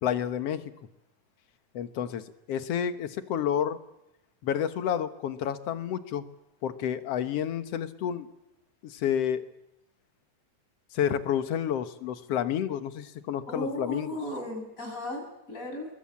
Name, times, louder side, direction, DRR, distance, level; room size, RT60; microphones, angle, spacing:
voice 1, 0.0-0.7 1.7-3.8 4.4-6.2 6.6-8.3 8.8-9.5 10.9-14.1, left 9 dB, 60° left, 10 dB, 2.1 m, -30 dB
voice 2, 13.5-15.9, left 1 dB, 25° left, 2 dB, 7.8 m, -35 dB
27.5 x 22.0 x 8.6 m, 0.89 s
omnidirectional pair, 3.4 m